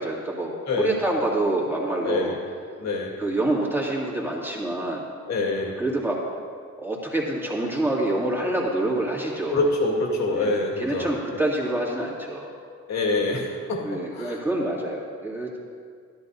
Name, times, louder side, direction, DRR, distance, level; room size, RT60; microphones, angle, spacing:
voice 1, 0.0-2.4 3.2-5.0 5.8-6.2 6.8-9.7 10.3-12.5 13.8-15.6, right 1 dB, 5° right, -4 dB, 2.3 m, -27 dB
voice 2, 2.0-2.4 2.8-3.1 5.3-5.8 9.5-11.1 12.9-14.4, left 2 dB, 65° left, -1 dB, 2.0 m, -25 dB
13.5 x 11.0 x 2.7 m, 2.1 s
cardioid pair, 90°, 30 cm